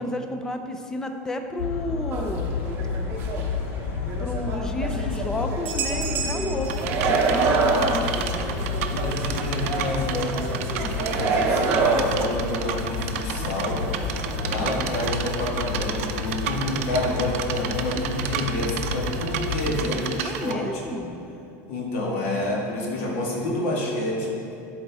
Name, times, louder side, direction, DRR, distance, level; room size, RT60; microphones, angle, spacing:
voice 1, 0.0-2.5 4.2-8.1 8.3-8.6 20.2-21.2, left 1 dB, 10° left, 5 dB, 0.3 m, -32 dB
sound 1, 1.6-19.8, left 5 dB, 90° left, 0.5 m, -31 dB
sound 2, 2.1-3.7 4.1-12.6 12.9-13.0 13.3-15.0, right 4 dB, 30° right, 0.7 m, -27 dB
sound 3, 6.6-20.5, right 8 dB, 85° right, 0.5 m, -32 dB
voice 2, 8.9-13.8 14.4-20.9 21.7-24.3, left 1 dB, 70° left, -2 dB, 1.6 m, -29 dB
11.5 x 4.3 x 3.4 m, 2.6 s
cardioid pair, 175°, 7 cm